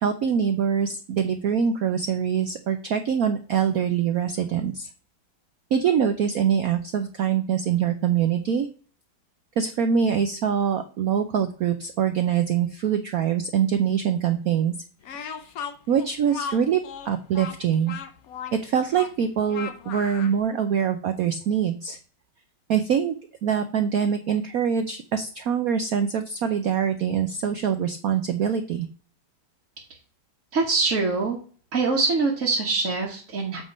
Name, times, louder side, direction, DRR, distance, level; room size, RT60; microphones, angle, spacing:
voice 1, 0.0-4.9 5.7-8.7 9.6-14.7 15.1-15.5 15.9-18.0 18.5-22.0 22.7-23.1 23.4-28.9, right 8 dB, 80° right, 8 dB, 0.7 m, -24 dB
Speech, 15.0-20.4, left 7 dB, 75° left, 0.8 m, -36 dB
voice 2, 30.5-31.4 31.7-33.6, right 3 dB, 40° right, -2 dB, 1.5 m, -24 dB
8.2 x 3.8 x 5.1 m, 0.42 s
omnidirectional pair, 2.3 m